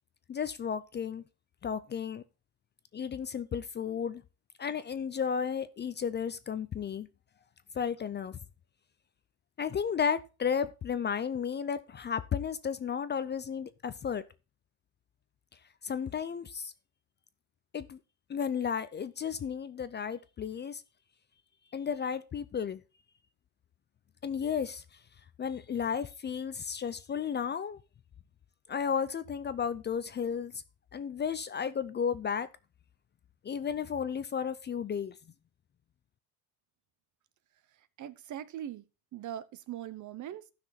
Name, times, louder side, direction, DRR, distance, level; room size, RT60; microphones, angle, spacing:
voice 1, 0.3-1.2 1.6-2.2 2.9-4.2 4.6-7.1 7.7-8.4 9.6-14.2 15.8-16.7 17.7-18.0 18.3-20.8 21.7-22.8 24.2-24.8 25.4-27.8 28.7-30.6 30.9-32.5 33.4-35.1, left 7 dB, 25° left, 0.5 m, -33 dB
voice 2, 38.0-38.8 39.1-40.4, right 11 dB, 45° right, 0.8 m, -41 dB
14.5 x 6.1 x 4.0 m
cardioid pair, 135°, 40 cm